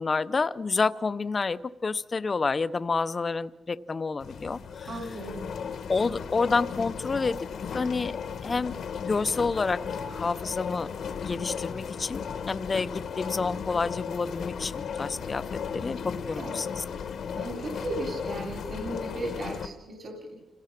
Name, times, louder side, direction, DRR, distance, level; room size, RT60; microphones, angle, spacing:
voice 1, 0.0-4.9 5.9-7.4 7.7-8.1 8.4-10.9 11.2-12.2 12.5-15.4 15.7-16.8, left 4 dB, 30° left, 14 dB, 0.6 m, -29 dB
sound 1, 4.2-19.7, left 6 dB, 70° left, 1.3 m, -36 dB
voice 2, 4.9-5.4 16.4-16.6 17.3-20.3, right 1 dB, 50° right, 2 dB, 2.9 m, -35 dB
29.0 x 16.5 x 5.9 m, 1.1 s
wide cardioid pair, 145°, 0 cm